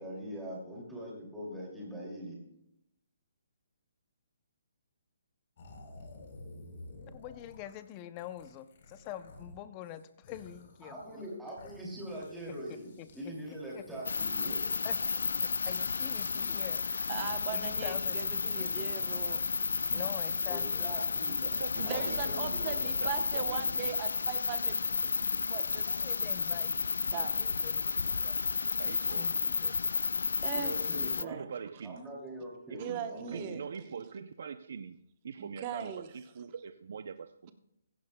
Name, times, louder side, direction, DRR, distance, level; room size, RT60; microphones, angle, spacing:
voice 1, 0.0-2.4 10.8-14.6 20.5-21.4 21.8-22.9 30.5-31.4 31.8-33.5, right 1 dB, 5° right, -5 dB, 2.5 m, -42 dB
sound 1, 5.6-9.5 9.8-16.6 17.2-22.6, left 2 dB, 40° left, 3.8 m, -53 dB
voice 2, 7.0-11.3 11.6-11.7 12.7-13.1 13.7-13.8 14.8-15.0 15.4-17.1 17.5-19.0 19.9-21.0 25.9-26.8 27.1-28.4 29.1-29.8, left 12 dB, 20° left, 12 dB, 0.5 m, -46 dB
sound 2, 14.0-31.2, left 4 dB, 90° left, 0.4 m, -32 dB
voice 3, 17.1-19.4 21.8-25.1 25.5-25.9 27.1-27.3 29.6-29.7 30.4-30.7 31.2-31.5 32.8-33.6 35.4-36.1, right 8 dB, 25° right, 9 dB, 0.9 m, -39 dB
voice 4, 21.4-22.6 22.8-24.0 28.8-29.4 31.3-32.0 32.7-32.9 33.3-37.5, right 6 dB, 55° right, 11 dB, 0.5 m, -43 dB
15.5 x 15.5 x 2.2 m, 0.79 s
hypercardioid pair, 170°, 0 cm